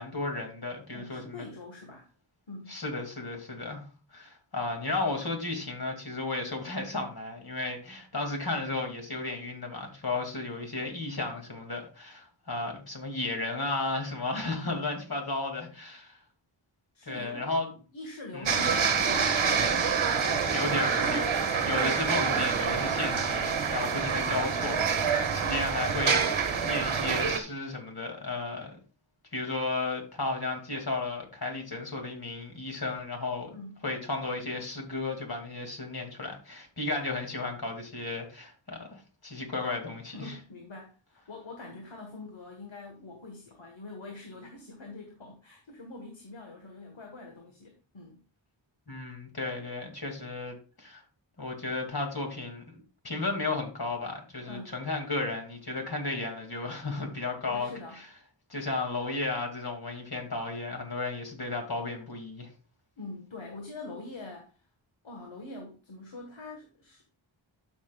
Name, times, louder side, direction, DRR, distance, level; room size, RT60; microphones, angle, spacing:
voice 1, 0.0-1.4 2.7-3.8 4.1-16.2 17.1-17.7 18.3-18.5 20.2-28.8 29.3-33.5 33.8-40.4 48.9-51.0 51.4-57.7 58.5-62.5, left 3 dB, 50° left, 2 dB, 2.5 m, -34 dB
voice 2, 0.9-2.1 2.5-2.8 16.9-17.6 17.9-19.7 33.5-33.8 40.1-48.2 54.4-54.7 57.4-58.0 63.0-64.5 65.0-67.1, left 2 dB, 75° left, 2 dB, 1.6 m, -44 dB
sound 1, 18.5-27.4, right 6 dB, 85° right, 1.2 m, -27 dB
12.5 x 6.2 x 2.4 m, 0.34 s
wide cardioid pair, 75°, 47 cm